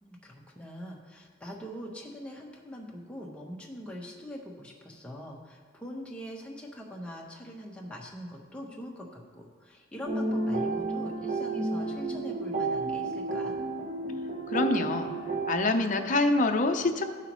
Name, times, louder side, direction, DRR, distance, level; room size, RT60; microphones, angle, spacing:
voice 1, 0.0-13.5, equal, 5° left, -2 dB, 1.0 m, -43 dB
sound 1, 10.1-15.6, right 3 dB, 40° right, 0.9 m, -31 dB
voice 2, 14.5-15.1 15.5-17.0, left 2 dB, 40° left, 5 dB, 0.6 m, -25 dB
14.0 x 5.7 x 3.0 m, 1.6 s
head